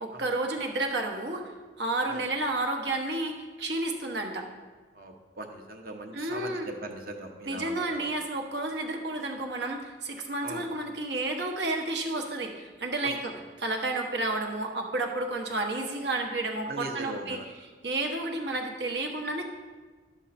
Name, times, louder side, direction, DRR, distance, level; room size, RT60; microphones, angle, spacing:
voice 1, 0.0-1.5 1.8-3.3 3.6-4.4 6.1-6.7 7.4-13.2 13.6-17.4 17.8-19.4, right 2 dB, 70° right, 3 dB, 1.2 m, -31 dB
voice 2, 4.9-8.0 10.4-10.6 13.0-13.1 16.6-17.5, right 2 dB, 50° right, 4 dB, 1.0 m, -40 dB
11.5 x 7.3 x 4.2 m, 1.4 s
head